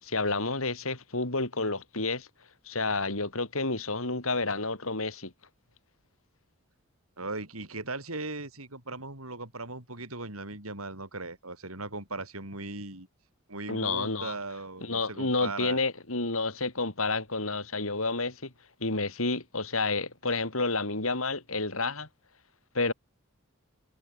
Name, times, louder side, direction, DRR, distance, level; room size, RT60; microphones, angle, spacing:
voice 1, 0.0-2.3 2.6-5.3 13.7-14.4 14.8-18.5 18.8-22.1 22.7-22.9, left 3 dB, 75° left, 5.0 m, -30 dB
voice 2, 7.2-13.1 13.5-15.8, right 2 dB, 85° right, 7.7 m, -38 dB
head